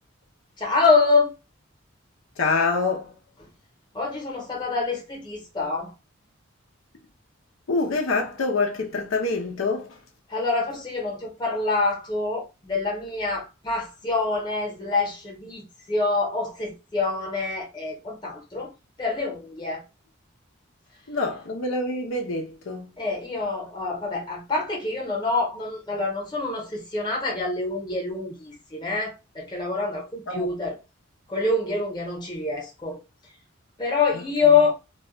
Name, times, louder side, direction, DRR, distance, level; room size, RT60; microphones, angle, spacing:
voice 1, 0.6-1.3 3.9-5.9 10.3-18.7 19.0-19.8 23.0-30.8 31.3-33.0 33.8-34.7, left 4 dB, 20° left, 0.9 m, -26 dB
voice 2, 2.4-3.1 7.7-9.9 21.1-22.9 30.3-30.5 34.1-34.2, left 3 dB, 80° left, 0.6 m, -26 dB
2.4 x 2.2 x 3.6 m
head